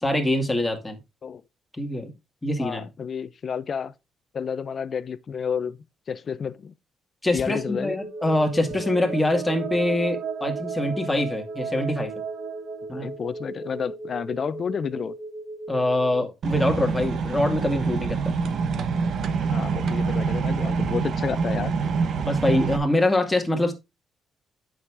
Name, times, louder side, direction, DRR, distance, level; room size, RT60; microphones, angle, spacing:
voice 1, 0.0-1.0 1.8-2.1 2.4-2.8 7.2-12.1 12.9-13.1 15.7-18.2 22.3-23.7, left 1 dB, 10° left, 2.2 m, -24 dB
voice 2, 2.6-3.9 4.3-5.8 6.1-6.7 7.3-8.0 12.9-15.1 19.5-21.7, left 7 dB, 50° left, 0.6 m, -30 dB
sound 1, 7.6-16.2, right 1 dB, 5° right, 1.9 m, -38 dB
sound 2, 8.0-13.8, right 7 dB, 85° right, 0.9 m, -35 dB
sound 3, 16.4-22.8, right 5 dB, 60° right, 1.2 m, -25 dB
8.5 x 6.5 x 3.6 m
cardioid pair, 90°, 0 cm